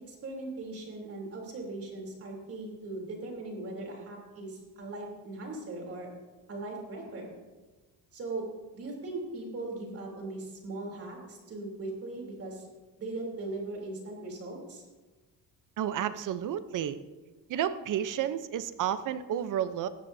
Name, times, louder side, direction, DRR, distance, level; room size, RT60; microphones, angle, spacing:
voice 1, 0.1-6.1 6.5-7.3 8.1-8.4 8.7-12.7 13.0-14.8, right 2 dB, 40° right, 0 dB, 3.4 m, -39 dB
voice 2, 15.8-17.0 17.5-19.9, right 10 dB, 55° right, 12 dB, 0.8 m, -31 dB
19.0 x 14.5 x 2.7 m, 1.2 s
cardioid pair, 180°, 37 cm